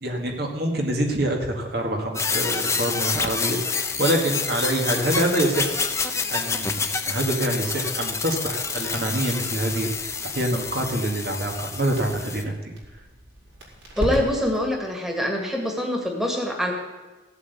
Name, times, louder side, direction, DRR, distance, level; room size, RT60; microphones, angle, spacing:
voice 1, 0.0-5.7 6.3-9.9 10.3-12.7, right 1 dB, 55° right, 1 dB, 2.0 m, -26 dB
sound 1, 2.1-12.4, left 5 dB, 15° left, 0.8 m, -28 dB
Crackle, 9.4-14.7, equal, 70° right, 4.7 m, -37 dB
voice 2, 14.0-16.7, equal, ahead, 0 dB, 2.0 m, -25 dB
16.0 x 8.2 x 8.2 m, 1.2 s
head